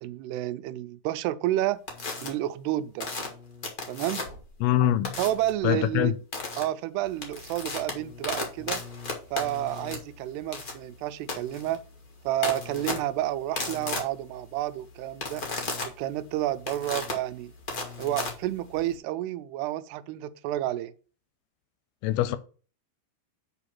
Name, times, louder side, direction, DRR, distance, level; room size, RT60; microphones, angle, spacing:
voice 1, 0.0-1.8 2.2-3.1 3.9-4.2 5.2-6.2 6.6-8.8 9.3-11.8 12.3-15.4 15.8-17.5 18.0-20.9, right 14 dB, 85° right, 2.6 m, -30 dB
sound 1, 1.9-2.3 3.0-4.5 5.0-5.5 6.3-6.6 7.1-19.0, left 4 dB, 55° left, 1.0 m, -35 dB
voice 2, 4.6-5.1 5.6-6.1 22.0-22.4, left 12 dB, 80° left, 2.5 m, -23 dB
6.4 x 4.9 x 5.8 m
omnidirectional pair, 4.7 m